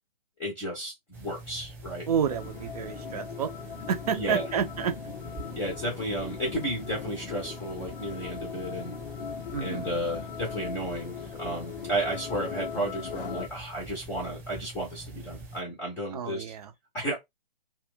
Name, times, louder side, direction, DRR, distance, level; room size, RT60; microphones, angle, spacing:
voice 1, 0.4-2.1 4.1-4.4 5.5-8.9 9.6-16.5 16.9-17.1, right 1 dB, 10° left, 0.6 m, -33 dB
sound 1, 1.1-15.6, right 1 dB, 10° right, 1.1 m, -45 dB
voice 2, 2.1-3.5 3.9-4.9 9.5-9.9 16.1-16.7, right 7 dB, 40° right, 0.6 m, -29 dB
sound 2, 2.3-13.5, left 8 dB, 65° left, 0.5 m, -40 dB
2.5 x 2.3 x 3.6 m
figure-of-eight pair, 140°, 29 cm